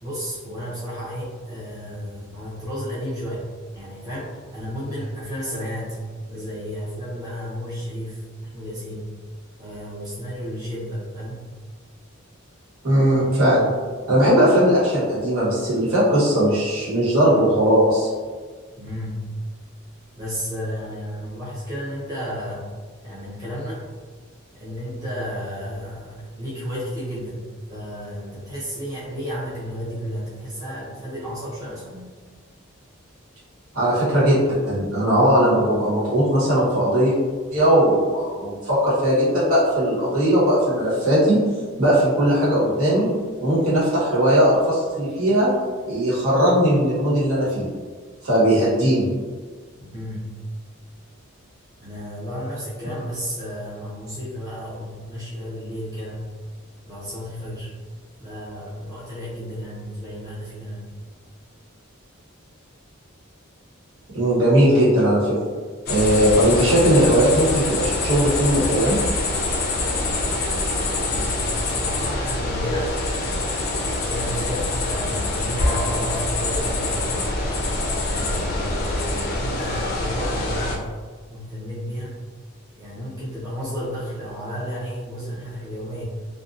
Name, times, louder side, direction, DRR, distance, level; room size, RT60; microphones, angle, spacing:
voice 1, 0.0-3.4 3.7-6.0 6.3-8.2 8.5-9.1 9.6-11.4 18.8-19.3 20.2-22.7 23.0-23.9 24.5-32.1 49.8-50.3 51.8-56.2 56.9-57.7 58.2-60.9 71.1-73.3 74.0-77.2 78.0-80.8 81.3-82.2 82.8-86.0, equal, 15° right, -10 dB, 0.6 m, -32 dB
voice 2, 12.8-13.7 14.1-18.1 33.7-34.4 34.7-37.1 37.5-41.4 41.8-43.1 43.4-45.5 45.8-47.7 48.2-49.1 64.1-65.3 65.9-69.0, equal, 85° right, -9 dB, 1.2 m, -18 dB
sound 1, 65.9-80.8, left 2 dB, 45° left, 0.4 m, -25 dB
2.6 x 2.2 x 2.4 m, 1.5 s
head